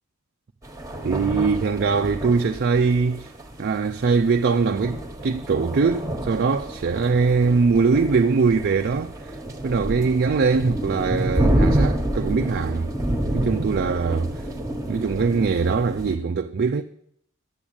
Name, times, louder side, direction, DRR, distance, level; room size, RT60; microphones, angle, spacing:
sound 1, 0.6-16.2, right 1 dB, 15° right, 1.2 m, -28 dB
voice 1, 1.0-3.3 3.6-12.9 13.3-14.4 14.9-16.8, right 4 dB, 50° right, 0.4 m, -22 dB
8.7 x 7.1 x 8.7 m
head